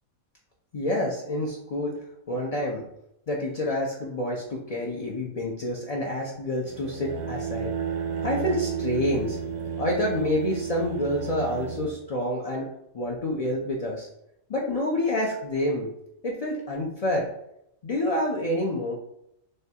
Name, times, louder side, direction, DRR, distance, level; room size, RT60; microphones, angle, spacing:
voice 1, 0.7-2.0 2.3-2.8 3.3-7.7 8.2-9.4 9.8-12.7 12.9-14.1 14.5-15.9 16.2-17.3 17.8-18.9, left 1 dB, 60° left, -3 dB, 0.4 m, -28 dB
sound 1, 6.7-12.0, right 7 dB, 70° right, 0.9 m, -32 dB
6.4 x 2.3 x 2.8 m, 0.78 s
omnidirectional pair, 1.4 m